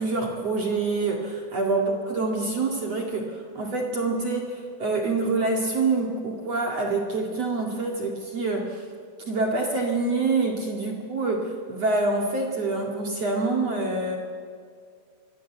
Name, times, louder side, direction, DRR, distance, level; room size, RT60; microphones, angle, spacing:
voice 1, 0.0-8.8 9.3-14.2, right 3 dB, 45° right, 0 dB, 2.3 m, -26 dB
27.0 x 23.5 x 8.0 m, 2.2 s
omnidirectional pair, 5.7 m